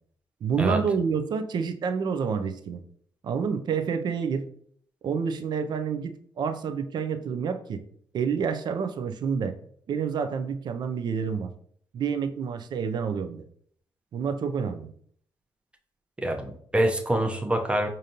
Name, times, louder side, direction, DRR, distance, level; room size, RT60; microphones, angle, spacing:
voice 1, 0.4-2.8 3.2-4.5 5.0-7.8 8.1-9.5 9.9-11.5 11.9-13.4 14.1-14.9, right 6 dB, 60° right, 9 dB, 0.4 m, -28 dB
voice 2, 16.2-17.9, right 1 dB, 15° right, 4 dB, 0.6 m, -25 dB
5.0 x 2.6 x 2.8 m, 0.62 s
cardioid pair, 85°, 8 cm